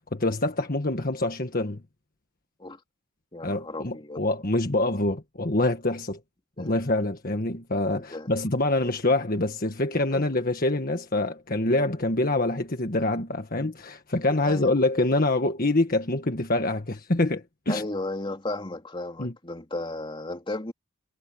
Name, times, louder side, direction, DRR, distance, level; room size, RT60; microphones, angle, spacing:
voice 1, 0.0-1.8 3.4-6.2 6.6-17.8 19.2-19.3, left 2 dB, 45° left, 1.6 m, -25 dB
voice 2, 3.3-4.2 6.6-6.7 7.9-8.3 10.1-10.3 14.4-14.7 17.7-20.7, left 2 dB, 25° left, 2.6 m, -34 dB
head